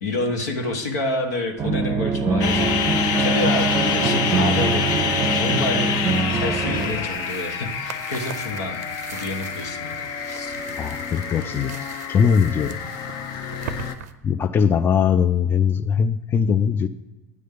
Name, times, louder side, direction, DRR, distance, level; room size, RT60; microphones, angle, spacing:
voice 1, 0.0-5.0 5.3-6.0 6.3-8.8 9.1-10.5, left 2 dB, 85° left, 4 dB, 1.2 m, -28 dB
sound 1, 1.6-6.9, right 4 dB, 30° right, 0.5 m, -23 dB
sound 2, 2.4-13.9, left 7 dB, 55° left, 0.7 m, -27 dB
sound 3, 6.7-14.1, right 9 dB, 80° right, 0.5 m, -40 dB
voice 2, 10.8-11.8 12.1-12.8 14.2-16.9, left 7 dB, 25° left, 12 dB, 0.4 m, -20 dB
9.4 x 3.3 x 6.7 m, 1.1 s
hypercardioid pair, 100°, 9 cm